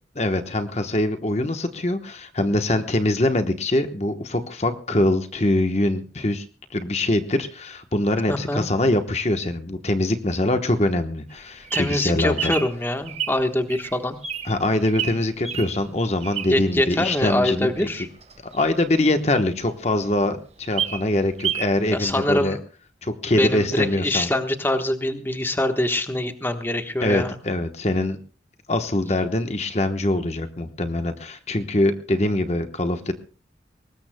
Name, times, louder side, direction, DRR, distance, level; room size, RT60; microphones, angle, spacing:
voice 1, 0.2-6.4 6.7-12.5 14.4-17.9 18.5-22.6 23.0-24.3 27.0-28.2 28.7-33.1, left 1 dB, 40° left, 7 dB, 1.1 m, -23 dB
voice 2, 8.3-8.7 11.7-14.2 16.5-18.1 21.9-22.6 23.4-27.4, left 1 dB, 10° left, 7 dB, 1.2 m, -24 dB
Bird vocalization bird call bird song, 11.3-16.8 17.2-19.4 19.8-19.9 20.1-20.2 20.5-21.8 22.0-22.1, right 8 dB, 35° right, 1.7 m, -30 dB
23.5 x 20.0 x 2.2 m, 0.37 s
head